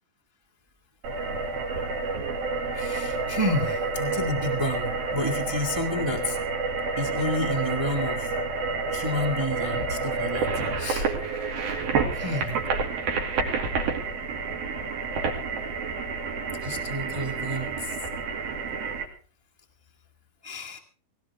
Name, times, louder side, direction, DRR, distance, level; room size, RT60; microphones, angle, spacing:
sound 1, 1.0-19.0, right 4 dB, 80° right, 4.2 m, -29 dB
voice 1, 2.7-6.4 7.0-8.3 8.9-11.1 12.1-12.6 16.6-17.9 20.4-20.8, left 1 dB, 25° right, 2 dB, 0.5 m, -30 dB
19.0 x 18.0 x 3.5 m, 0.39 s
omnidirectional pair, 4.1 m